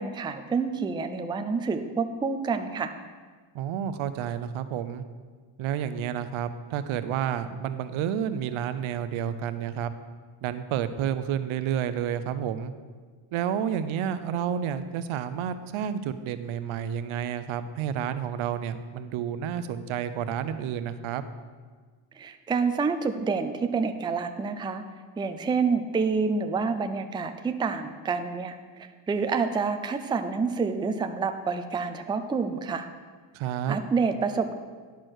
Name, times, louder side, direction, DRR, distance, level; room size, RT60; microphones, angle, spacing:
voice 1, 0.0-2.9 22.2-24.8 25.2-32.9 33.7-34.6, right 5 dB, 10° right, 8 dB, 0.3 m, -28 dB
voice 2, 3.5-5.0 5.6-9.9 10.4-12.7 13.3-21.2 33.3-33.8, right 9 dB, 80° right, 11 dB, 0.7 m, -30 dB
10.5 x 4.5 x 6.4 m, 1.5 s
cardioid pair, 115°, 48 cm